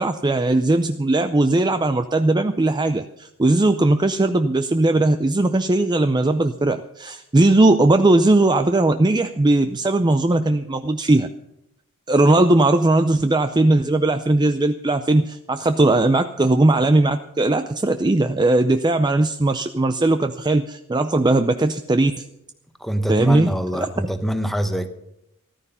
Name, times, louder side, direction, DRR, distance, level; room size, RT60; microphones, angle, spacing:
voice 1, 0.0-11.3 12.1-22.1 23.1-23.9, right 2 dB, 20° right, 0.5 m, -18 dB
voice 2, 22.8-24.9, equal, ahead, 1.1 m, -24 dB
14.0 x 13.5 x 5.6 m
head